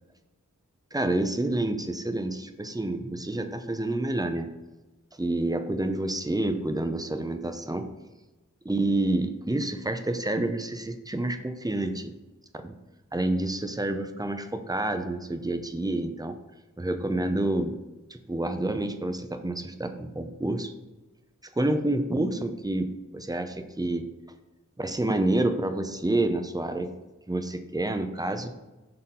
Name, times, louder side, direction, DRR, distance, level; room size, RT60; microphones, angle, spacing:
voice 1, 0.9-4.5 5.2-7.8 8.6-12.1 12.6-12.7 13.1-16.4 16.8-17.7 18.1-20.7 21.6-22.9 23.1-24.0 24.8-26.9 27.3-28.5, right 2 dB, 10° right, 7 dB, 0.6 m, -28 dB
6.7 x 3.9 x 3.7 m, 1.1 s
wide cardioid pair, 60°, 32 cm